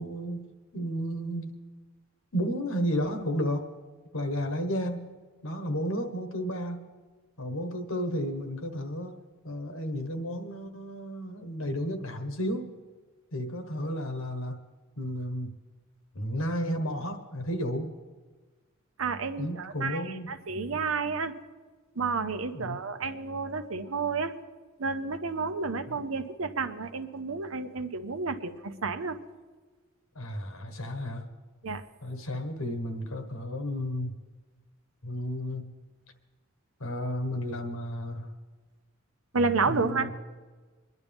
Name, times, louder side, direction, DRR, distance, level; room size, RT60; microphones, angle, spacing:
voice 1, 0.0-1.6 2.3-3.7 4.1-6.9 7.4-12.7 13.3-14.6 15.0-15.5 16.1-17.9 19.4-20.3 20.5-20.8 22.5-22.8 30.1-31.3 32.0-34.1 35.0-35.6 36.8-38.3 39.7-40.1, equal, 80° left, 5 dB, 1.5 m, -33 dB
voice 2, 19.0-21.3 21.9-24.3 24.8-29.2 31.6-31.8 39.3-40.1, right 4 dB, 80° right, 10 dB, 0.8 m, -31 dB
24.0 x 11.0 x 3.6 m, 1.4 s
head